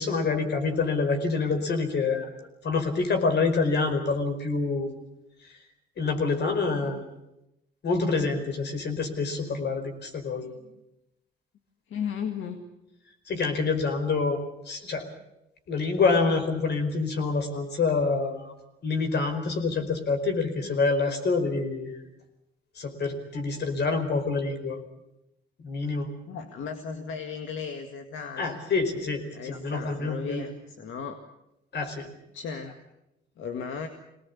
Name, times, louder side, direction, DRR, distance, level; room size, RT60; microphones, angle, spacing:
voice 1, 0.0-2.3 2.6-4.9 6.0-7.0 7.8-10.5 13.3-15.1 15.7-18.5 18.8-22.0 22.8-24.8 25.6-26.1 28.4-30.5 31.7-32.1, left 4 dB, 60° left, 7 dB, 4.8 m, -27 dB
voice 2, 6.4-7.0 10.4-10.5 11.9-12.6 23.3-23.4 26.3-28.6 29.3-31.2 32.3-32.8 33.4-33.9, left 6 dB, 75° left, 6 dB, 2.0 m, -36 dB
24.0 x 19.0 x 8.4 m, 0.88 s
cardioid pair, 90°, 20 cm